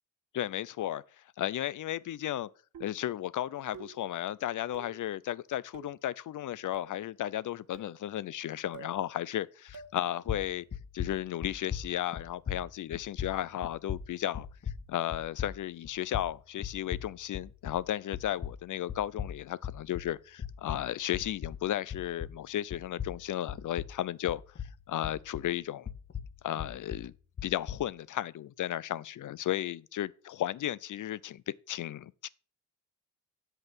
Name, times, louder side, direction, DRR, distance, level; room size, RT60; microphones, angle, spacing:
voice 1, 0.3-1.0 1.4-2.5 2.8-10.6 10.9-14.5 14.9-24.4 24.9-25.9 26.4-27.1 27.4-32.3, left 12 dB, 60° left, 0.5 m, -34 dB
sound 1, 2.7-3.1 3.7-4.1 4.7-5.1 5.7-6.0 6.7-7.1 7.7-8.0 8.7-9.0 9.7-10.0, right 5 dB, 60° right, 1.7 m, -49 dB
sound 2, 9.7-10.0 10.3-17.9 18.1-22.5 22.7-25.6 25.9-27.9, left 8 dB, 40° left, 1.0 m, -39 dB
8.1 x 8.0 x 5.1 m
wide cardioid pair, 135°, 34 cm